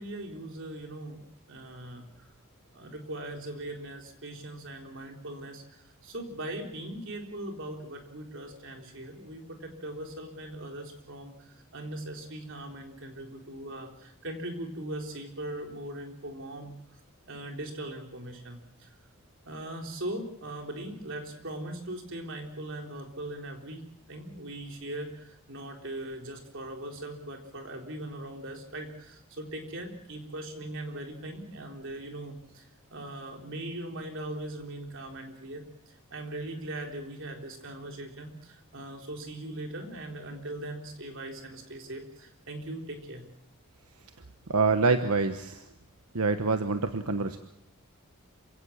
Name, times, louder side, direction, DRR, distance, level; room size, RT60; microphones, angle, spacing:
voice 1, 0.0-2.3 2.7-16.7 17.3-18.9 19.5-43.3, right 1 dB, 60° right, 3 dB, 4.0 m, -40 dB
voice 2, 44.5-45.7 46.1-47.4, right 4 dB, 90° right, 8 dB, 1.2 m, -26 dB
27.5 x 16.5 x 7.3 m, 0.80 s
head